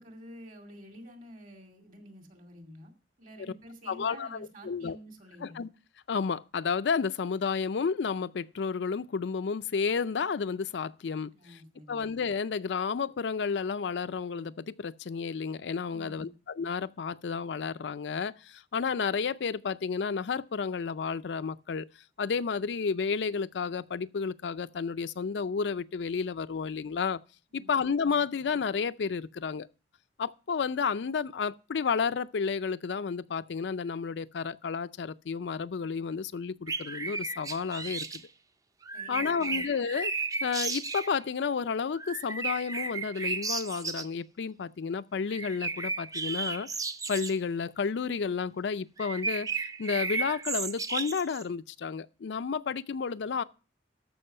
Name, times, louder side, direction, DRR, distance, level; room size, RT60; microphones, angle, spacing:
voice 1, 0.0-2.9 3.2-5.6 11.3-12.0 15.9-16.3 27.5-27.8 38.9-39.6, equal, 50° right, 2.3 m, -49 dB
voice 2, 3.9-5.0 5.4-5.7 6.1-11.6 11.9-21.9 22.2-27.2 27.5-29.7 30.2-38.2 39.1-40.1 40.4-46.7 47.1-49.5 49.8-53.4, left 5 dB, 80° left, 0.4 m, -31 dB
sound 1, 36.7-38.2 38.8-41.2 42.0-44.0 45.3-47.3 49.0-51.4, right 4 dB, 20° right, 0.5 m, -34 dB
13.5 x 5.5 x 5.4 m
head